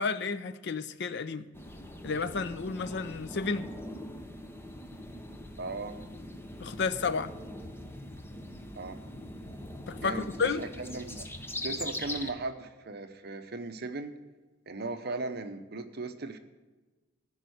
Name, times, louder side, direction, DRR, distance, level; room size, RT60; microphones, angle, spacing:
voice 1, 0.0-1.5 2.0-3.7 6.6-7.3 9.9-10.6, left 4 dB, 60° left, 0.6 m, -31 dB
sound 1, 1.5-12.3, left 1 dB, 10° left, 0.8 m, -42 dB
voice 2, 5.6-6.0 8.8-9.0 10.0-10.3 10.6-11.3 11.6-14.1 14.7-16.4, right 3 dB, 55° right, 0.8 m, -37 dB
14.5 x 5.4 x 7.9 m
head